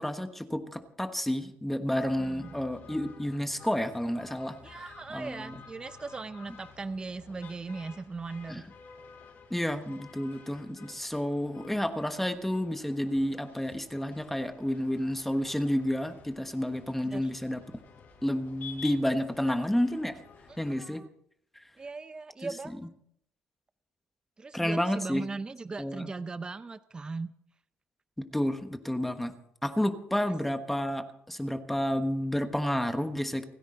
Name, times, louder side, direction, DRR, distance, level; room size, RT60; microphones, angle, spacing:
voice 1, 0.0-4.6 5.1-5.5 8.5-8.6 9.5-17.6 18.2-20.2 20.6-21.0 21.5-21.6 22.4-22.5 24.5-25.2 25.8-26.1 28.3-29.3 29.6-33.5, left 1 dB, 5° left, 7 dB, 1.3 m, -30 dB
sound 1, 1.9-20.7, left 6 dB, 55° left, 6.8 m, -52 dB
voice 2, 2.2-2.5 4.6-8.7 16.8-17.3 20.5-21.1 21.8-22.8 24.4-27.3, right 3 dB, 20° right, 12 dB, 0.6 m, -39 dB
29.5 x 10.5 x 3.9 m, 0.70 s
cardioid pair, 130°, 4 cm